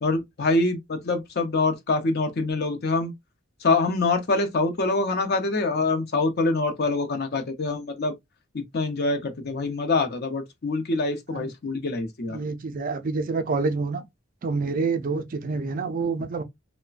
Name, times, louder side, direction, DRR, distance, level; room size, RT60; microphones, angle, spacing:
voice 1, 0.0-3.1 3.6-8.1 8.5-12.4, left 3 dB, 50° left, 0.6 m, -25 dB
voice 2, 12.3-14.0 14.4-16.4, right 4 dB, 45° right, 0.4 m, -27 dB
3.1 x 2.1 x 2.4 m
head